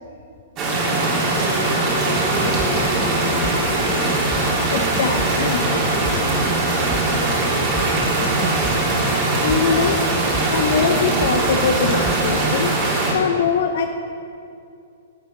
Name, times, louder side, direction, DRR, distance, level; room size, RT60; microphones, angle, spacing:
sound 1, 0.6-13.1, right 2 dB, 35° right, 2.8 m, -21 dB
voice 1, 1.3-3.8, left 1 dB, 15° left, -3 dB, 2.2 m, -30 dB
sound 2, 2.1-12.5, right 1 dB, 5° right, 0.9 m, -32 dB
voice 2, 4.7-5.7 9.4-10.0 10.5-12.8 13.1-13.9, left 6 dB, 60° left, 6 dB, 0.5 m, -22 dB
11.5 x 8.1 x 4.2 m, 2.5 s
figure-of-eight pair, 110°, 0 cm